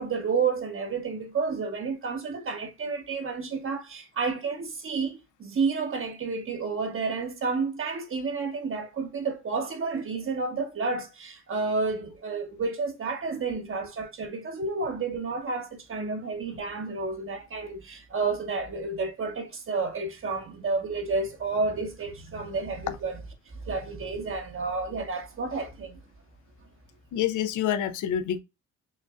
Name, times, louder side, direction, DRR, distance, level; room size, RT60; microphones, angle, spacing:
voice 1, 0.0-23.2 23.6-26.0, right 4 dB, 45° right, 0.9 m, -30 dB
voice 2, 27.1-28.4, left 10 dB, 80° left, 0.6 m, -27 dB
6.3 x 2.5 x 2.3 m
cardioid pair, 90°, 30 cm